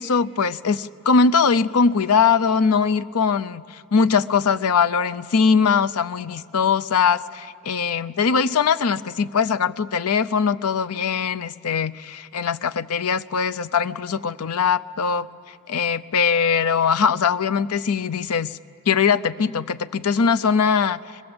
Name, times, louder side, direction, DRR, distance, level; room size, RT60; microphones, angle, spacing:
voice 1, 0.0-15.3 15.7-18.5 18.9-21.0, left 5 dB, 80° left, 12 dB, 0.6 m, -21 dB
24.5 x 20.5 x 7.9 m, 2.3 s
head